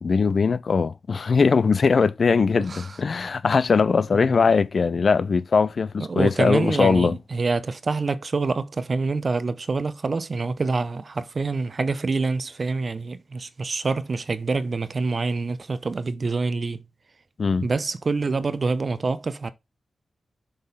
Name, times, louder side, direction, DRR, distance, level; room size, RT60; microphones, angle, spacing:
voice 1, 0.0-7.1 17.4-17.7, left 5 dB, 60° left, 0.5 m, -20 dB
voice 2, 2.6-3.0 4.1-4.3 6.0-16.8 17.6-19.5, right 3 dB, 50° right, 0.8 m, -26 dB
6.8 x 3.9 x 5.5 m
cardioid pair, 60°, 0 cm